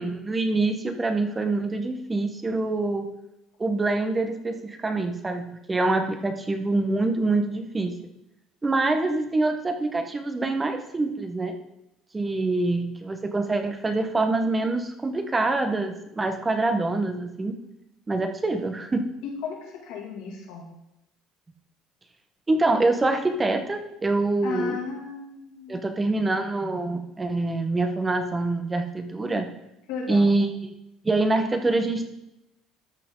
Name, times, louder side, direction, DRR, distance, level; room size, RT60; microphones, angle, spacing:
voice 1, 0.0-3.0 3.6-7.9 8.6-11.6 12.1-17.6 18.1-19.1 22.5-24.8 25.7-29.5 30.1-30.7 31.0-32.1, right 2 dB, 20° right, 6 dB, 1.2 m, -25 dB
voice 2, 19.2-20.7 24.4-26.1 29.9-30.3, left 5 dB, 85° left, -2 dB, 2.7 m, -35 dB
12.5 x 5.8 x 3.9 m, 0.85 s
supercardioid pair, 85°, 0 cm